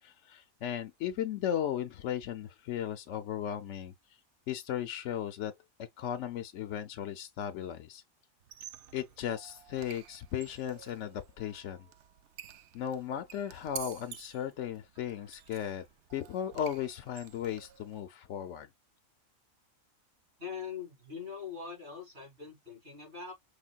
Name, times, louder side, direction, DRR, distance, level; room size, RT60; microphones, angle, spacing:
voice 1, 0.0-3.9 4.5-5.5 5.8-8.0 8.9-11.9 12.7-15.8 16.1-18.7, left 10 dB, 65° left, 0.8 m, -36 dB
Squeak, 8.4-18.0, right 10 dB, 65° right, 0.8 m, -50 dB
voice 2, 20.4-23.3, left 6 dB, 50° right, 3.4 m, -42 dB
5.0 x 3.4 x 2.3 m
omnidirectional pair, 1.4 m